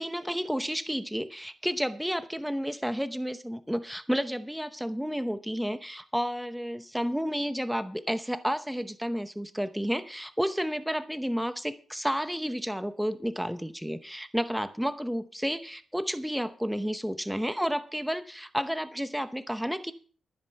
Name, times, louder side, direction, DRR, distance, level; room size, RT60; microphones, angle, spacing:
voice 1, 0.0-19.9, equal, ahead, 10 dB, 0.8 m, -31 dB
14.0 x 7.5 x 5.6 m, 0.42 s
cardioid pair, 105°, 0 cm